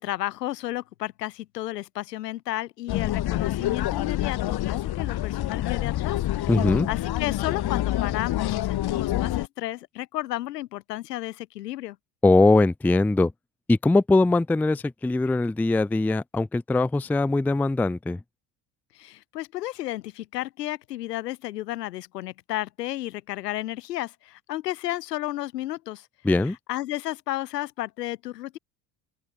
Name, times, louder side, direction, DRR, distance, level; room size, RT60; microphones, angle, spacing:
voice 1, 0.0-12.0 18.9-26.1 26.4-28.6, left 15 dB, 85° left, 4.5 m, -33 dB
sound 1, 2.9-9.5, left 14 dB, 50° left, 2.0 m, -27 dB
voice 2, 6.5-6.9 12.2-13.3 13.7-18.2 26.2-26.6, left 2 dB, 5° left, 0.4 m, -21 dB
open air
hypercardioid pair, 65°, 47 cm